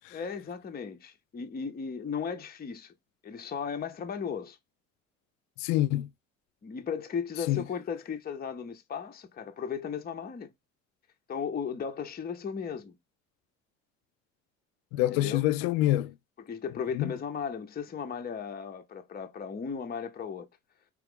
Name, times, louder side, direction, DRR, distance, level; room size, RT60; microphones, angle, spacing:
voice 1, 0.1-2.9 3.2-4.6 6.6-10.5 11.3-13.0 15.1-15.5 16.4-20.5, left 6 dB, 25° left, 0.7 m, -36 dB
voice 2, 5.6-6.1 7.5-7.6 14.9-16.1 16.9-17.1, left 15 dB, 65° left, 0.5 m, -26 dB
4.7 x 3.1 x 3.5 m
figure-of-eight pair, 45°, 40 cm